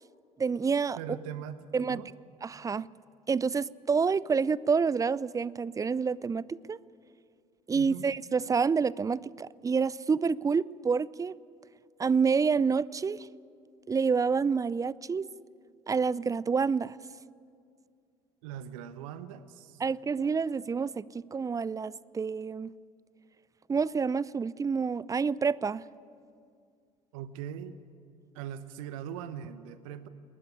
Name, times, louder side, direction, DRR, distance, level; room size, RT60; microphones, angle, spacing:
voice 1, 0.4-1.0 1.7-2.0 2.4-2.9 3.3-6.8 7.7-11.3 12.0-13.3 13.9-15.3 15.9-17.0 19.8-22.7 23.7-25.8, right 5 dB, 20° right, 22 dB, 0.5 m, -28 dB
voice 2, 1.0-2.1 7.7-8.1 18.4-19.8 27.1-27.8 28.3-30.1, right 9 dB, 65° right, 13 dB, 1.0 m, -41 dB
20.0 x 19.5 x 9.8 m, 2.3 s
figure-of-eight pair, 55°, 18 cm